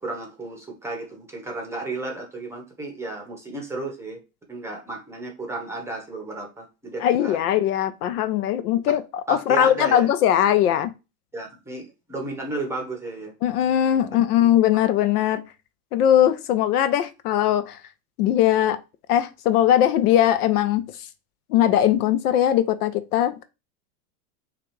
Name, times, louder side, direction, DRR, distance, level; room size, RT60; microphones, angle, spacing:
voice 1, 0.0-4.2 4.5-7.4 9.3-10.1 11.3-13.3 14.1-14.2 14.7-14.8, right 2 dB, 5° right, 0.9 m, -33 dB
voice 2, 7.0-10.9 13.4-15.4 15.9-17.8 18.2-18.8 19.1-20.8 21.5-23.4, left 11 dB, 70° left, 0.7 m, -20 dB
5.9 x 2.5 x 3.1 m
supercardioid pair, 140°, 47 cm